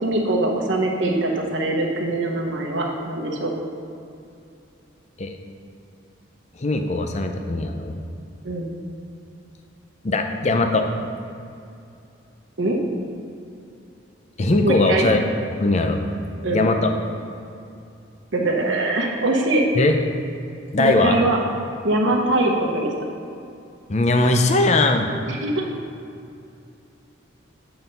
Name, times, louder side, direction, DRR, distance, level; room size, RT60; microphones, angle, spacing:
voice 1, 0.0-3.5 8.4-8.7 12.6-12.8 14.6-15.1 16.4-16.7 18.3-19.7 20.8-21.4 21.8-22.9 25.3-25.7, right 2 dB, 75° right, 0 dB, 1.1 m, -22 dB
voice 2, 6.6-8.0 10.0-10.9 14.4-15.2 15.6-16.0 16.5-16.9 19.8-19.9 20.7-21.2 23.9-25.1, left 2 dB, 35° left, 5 dB, 0.6 m, -20 dB
9.1 x 4.0 x 5.4 m, 2.5 s
head